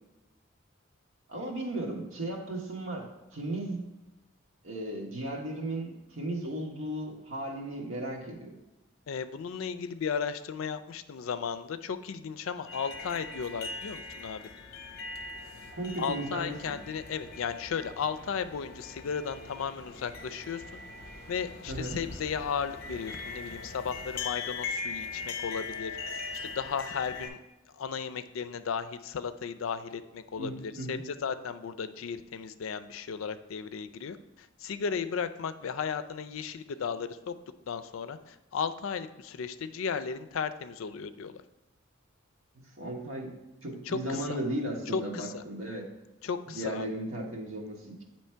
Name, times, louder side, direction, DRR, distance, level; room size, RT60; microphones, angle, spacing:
voice 1, 1.3-3.8 4.6-8.6 15.7-16.8 21.7-22.0 30.4-31.0 42.6-43.3 43.6-45.9 46.5-48.0, right 1 dB, 90° right, 0 dB, 1.3 m, -36 dB
voice 2, 9.1-14.5 16.0-20.8 21.3-26.0 26.4-27.4 27.7-37.3 37.7-41.4 43.8-44.4 44.9-45.4 46.2-46.9, left 6 dB, 85° left, 11 dB, 0.4 m, -35 dB
sound 1, 12.6-27.3, left 4 dB, 50° left, 0.7 m, -41 dB
8.4 x 3.1 x 4.4 m, 1.1 s
head